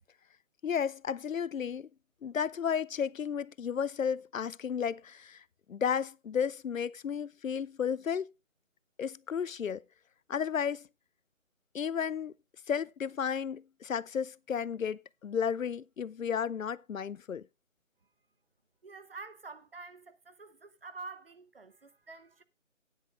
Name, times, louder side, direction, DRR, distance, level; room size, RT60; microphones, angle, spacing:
voice 1, 0.6-1.9 2.2-8.3 9.0-9.8 10.3-10.9 11.7-12.3 12.7-17.5, left 7 dB, 85° left, 0.5 m, -33 dB
voice 2, 18.8-22.4, right 3 dB, 45° right, 0.9 m, -47 dB
16.5 x 10.0 x 2.4 m
figure-of-eight pair, 160°, 39 cm